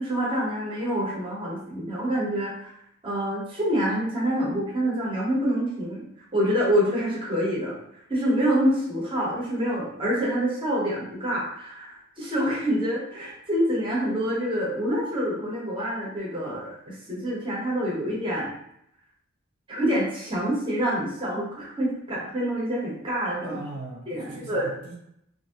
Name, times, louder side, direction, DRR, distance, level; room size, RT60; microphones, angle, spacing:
voice 1, 0.0-2.7 3.0-6.0 6.3-7.8 8.1-18.5 19.7-23.6 24.1-24.7, equal, 25° right, -5 dB, 0.9 m, -26 dB
voice 2, 23.4-25.0, right 2 dB, 75° right, -3 dB, 0.8 m, -39 dB
2.9 x 2.6 x 2.8 m, 0.75 s
head